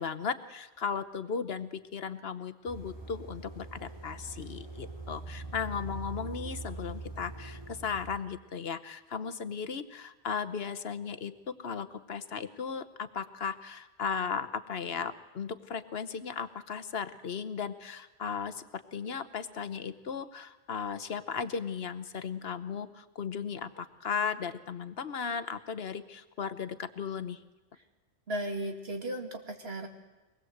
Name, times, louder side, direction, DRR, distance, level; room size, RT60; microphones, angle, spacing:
voice 1, 0.0-27.4, left 6 dB, 65° left, 12 dB, 1.2 m, -36 dB
sound 1, 2.7-8.2, right 3 dB, 25° right, 2.9 m, -43 dB
voice 2, 28.3-29.9, right 1 dB, 70° right, 3 dB, 2.5 m, -35 dB
24.0 x 19.5 x 7.9 m, 1.1 s
omnidirectional pair, 1.1 m